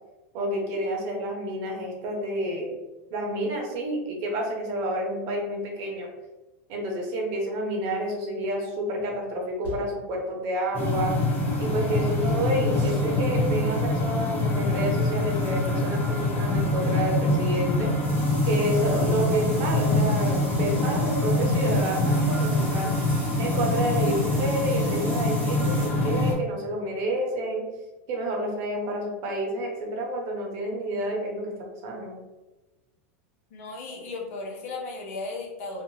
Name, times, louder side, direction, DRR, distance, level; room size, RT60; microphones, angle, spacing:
voice 1, 0.3-2.7 3.1-6.1 6.7-11.1 11.6-17.9 18.4-22.9 23.4-27.7 28.1-31.5 31.8-32.2, right 1 dB, 45° right, 0 dB, 0.8 m, -29 dB
sound 1, 9.0-9.2 9.6-10.1 11.8-13.2 13.5-13.8 15.4-17.6 18.0-25.9, right 2 dB, 20° right, 1.0 m, -44 dB
sound 2, 10.7-26.3, left 1 dB, 25° left, 0.6 m, -25 dB
voice 2, 33.5-35.8, left 3 dB, 65° left, -1 dB, 0.8 m, -35 dB
2.6 x 2.4 x 2.8 m, 1.1 s
supercardioid pair, 135°, 7 cm